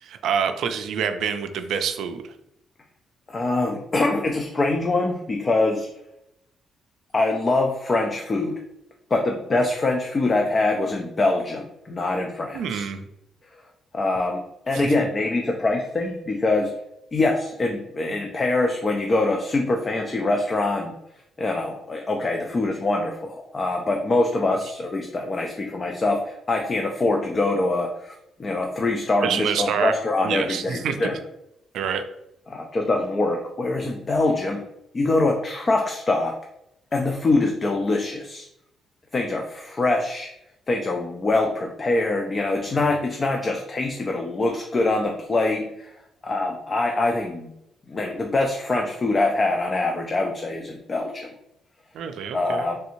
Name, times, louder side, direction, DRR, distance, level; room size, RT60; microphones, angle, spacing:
voice 1, 0.0-2.2 12.5-13.1 14.7-14.8 29.2-29.9 30.2-30.9 31.7-32.0 51.9-52.7, right 7 dB, 75° right, 8 dB, 0.3 m, -26 dB
voice 2, 3.3-5.9 7.1-8.6 9.1-12.9 13.9-16.7 17.1-20.9 21.4-28.1 28.4-31.2 32.5-34.6 34.9-36.4 36.9-38.5 39.1-40.3 40.7-45.9 46.2-47.5 47.9-51.3 52.3-52.8, left 2 dB, 35° left, 2 dB, 0.4 m, -24 dB
3.3 x 2.6 x 2.9 m, 0.82 s
cardioid pair, 90°, 0 cm